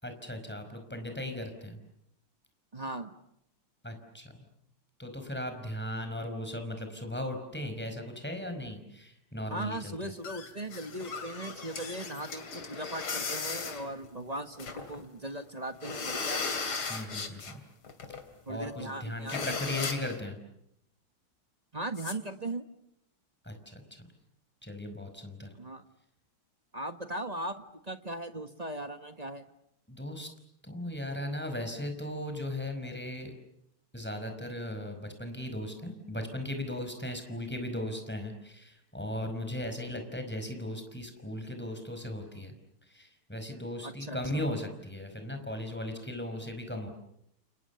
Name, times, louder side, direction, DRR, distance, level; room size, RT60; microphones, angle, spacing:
voice 1, 0.0-1.8 3.8-4.4 5.0-10.1 16.9-17.6 18.5-20.4 23.4-23.8 24.6-25.5 29.9-30.3 30.6-33.3 33.9-42.5 42.9-46.9, left 1 dB, 5° left, 6 dB, 5.0 m, -37 dB
voice 2, 2.7-3.1 9.5-16.4 18.5-19.8 21.7-22.6 25.6-25.8 26.7-29.4 43.8-44.2, right 1 dB, 20° right, 8 dB, 1.2 m, -38 dB
sound 1, 10.2-15.0 15.4-15.5 15.7-17.6 17.8-18.2 18.6-18.7 18.9-19.0 19.3-20.2 22.0-22.1, left 4 dB, 70° left, 3.8 m, -37 dB
29.0 x 29.0 x 7.1 m, 0.77 s
omnidirectional pair, 2.4 m